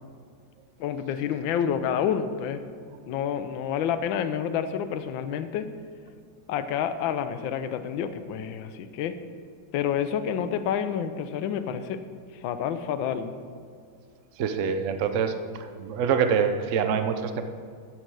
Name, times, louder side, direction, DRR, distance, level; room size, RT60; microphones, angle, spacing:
voice 1, 0.8-2.6 3.1-5.7 6.5-9.2 9.7-12.0 12.4-13.3, left 8 dB, 85° left, 10 dB, 1.4 m, -28 dB
voice 2, 14.4-15.3 15.8-17.4, right 7 dB, 60° right, 8 dB, 0.8 m, -25 dB
12.5 x 7.8 x 4.7 m, 2.2 s
omnidirectional pair, 2.1 m